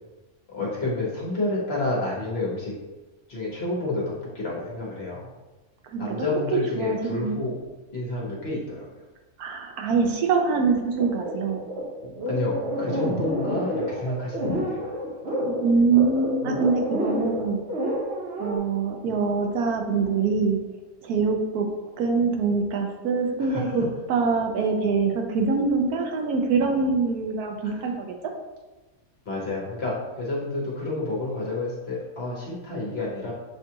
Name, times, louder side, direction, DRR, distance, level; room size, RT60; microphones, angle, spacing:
voice 1, 0.5-2.7 3.3-5.3 6.0-7.6 7.9-9.0 12.3-15.4 23.4-23.7 27.6-27.9 29.2-33.3, left 2 dB, 50° left, -4 dB, 1.2 m, -30 dB
voice 2, 6.5-7.4 9.4-11.6 15.5-17.6 18.4-20.6 21.0-21.7 22.0-28.2, right 4 dB, 90° right, 2 dB, 1.2 m, -24 dB
sound 1, 11.0-18.6, equal, 50° right, 1.1 m, -29 dB
7.0 x 2.4 x 2.8 m, 1.1 s
omnidirectional pair, 1.5 m